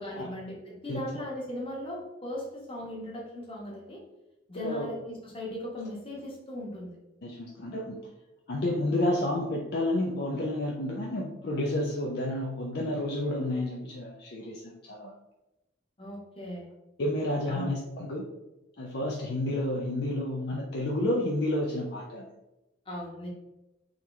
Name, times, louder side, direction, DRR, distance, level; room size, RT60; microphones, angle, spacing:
voice 1, 0.0-4.0 4.5-7.0 16.0-16.7 17.5-17.7 22.9-23.3, left 1 dB, 30° left, -4 dB, 1.1 m, -38 dB
voice 2, 4.5-4.9 7.2-8.0 8.5-15.1 17.0-18.2 18.8-22.3, left 1 dB, 55° left, -1 dB, 0.5 m, -30 dB
3.8 x 2.9 x 3.2 m, 0.95 s
head